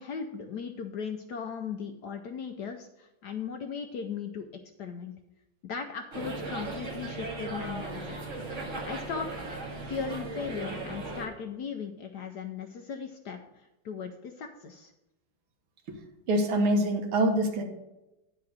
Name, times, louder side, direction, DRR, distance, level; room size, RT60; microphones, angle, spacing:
voice 1, 0.0-4.5 4.8-5.1 5.6-8.2 8.5-9.3 9.8-14.9, left 6 dB, 70° left, 5 dB, 1.0 m, -37 dB
sound 1, 6.1-11.3, right 2 dB, 35° right, 1.8 m, -37 dB
voice 2, 16.3-17.6, right 1 dB, 75° right, 4 dB, 2.2 m, -25 dB
10.0 x 4.8 x 6.4 m, 0.94 s
omnidirectional pair, 2.3 m